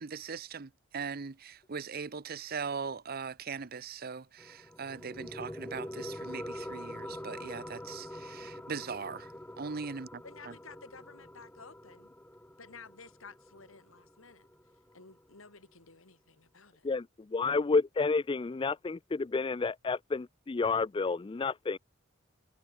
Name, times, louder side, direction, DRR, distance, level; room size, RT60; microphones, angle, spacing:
voice 1, 0.0-9.3 9.6-10.2, right 5 dB, 45° right, 0.7 m, -40 dB
sound 1, 4.4-15.4, left 1 dB, 10° left, 1.2 m, -45 dB
voice 2, 10.2-12.1 12.6-14.5 14.9-16.9, left 4 dB, 80° left, 3.6 m, -53 dB
voice 3, 16.8-21.8, left 4 dB, 25° left, 0.4 m, -30 dB
head